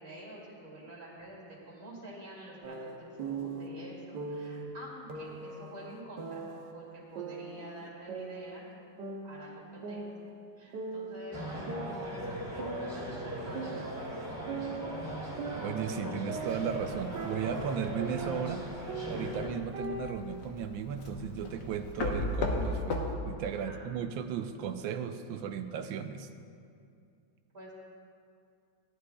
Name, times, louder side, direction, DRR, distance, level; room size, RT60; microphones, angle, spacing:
voice 1, 0.0-8.6 9.2-14.3 23.6-23.8 25.2-25.3 27.5-27.7, right 1 dB, 35° right, -7 dB, 2.6 m, -48 dB
sound 1, 2.6-3.7 4.1-4.6 5.1-6.7 7.2-8.7 9.0-10.5 10.7-11.2 11.7-14.1 14.5-18.6 18.9-20.2, right 4 dB, 70° right, 1.5 m, -40 dB
sound 2, 11.3-19.5, equal, 10° right, 2.5 m, -40 dB
voice 2, 15.6-18.6 19.1-23.0 23.3-26.3, right 7 dB, 90° right, 8 dB, 1.4 m, -35 dB
sound 3, 16.5-23.1, left 2 dB, 70° left, 1.6 m, -38 dB
16.5 x 11.0 x 2.3 m, 2.4 s
omnidirectional pair, 2.0 m